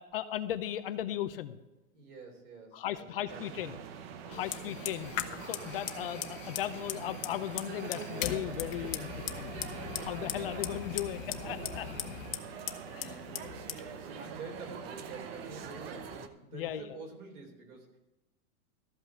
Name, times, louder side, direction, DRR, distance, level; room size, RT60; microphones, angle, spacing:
voice 1, 0.0-1.6 2.7-3.8 4.3-5.1 5.4-9.1 9.4-9.5 9.9-11.9 12.9-13.2 16.5-16.8, left 12 dB, 40° left, 12 dB, 0.6 m, -37 dB
voice 2, 1.9-3.7 4.2-4.8 12.9-18.0, right 4 dB, 80° right, 1 dB, 4.0 m, -48 dB
sound 1, 3.3-16.3, right 8 dB, 45° right, 0.9 m, -44 dB
Fire, 4.3-16.1, left 11 dB, 60° left, 1.1 m, -41 dB
13.5 x 5.7 x 7.5 m, 1.1 s
supercardioid pair, 170°, 43 cm